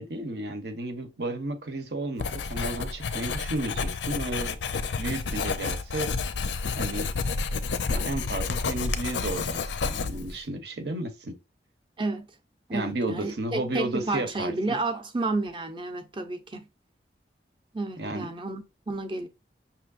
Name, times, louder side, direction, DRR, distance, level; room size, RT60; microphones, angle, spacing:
voice 1, 0.0-4.6 5.0-6.1 6.8-7.1 7.9-11.4 12.7-14.8 18.0-18.3, right 2 dB, 70° right, 0.9 m, -33 dB
Writing, 2.2-10.4, left 4 dB, 90° left, 0.5 m, -30 dB
voice 2, 12.7-16.7 17.7-19.3, right 2 dB, 25° right, 0.6 m, -31 dB
5.7 x 3.0 x 2.4 m
head